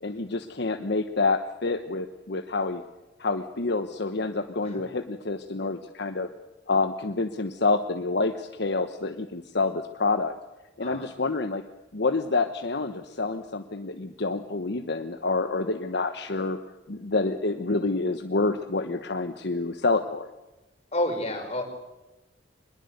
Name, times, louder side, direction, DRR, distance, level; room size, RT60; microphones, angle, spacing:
voice 1, 0.0-2.8 3.2-6.3 6.7-10.3 10.8-11.6 11.9-16.6 16.9-20.3, left 3 dB, 65° left, 7 dB, 1.1 m, -28 dB
voice 2, 20.9-21.7, left 1 dB, 35° left, 3 dB, 5.5 m, -29 dB
23.0 x 21.0 x 8.1 m, 1.1 s
head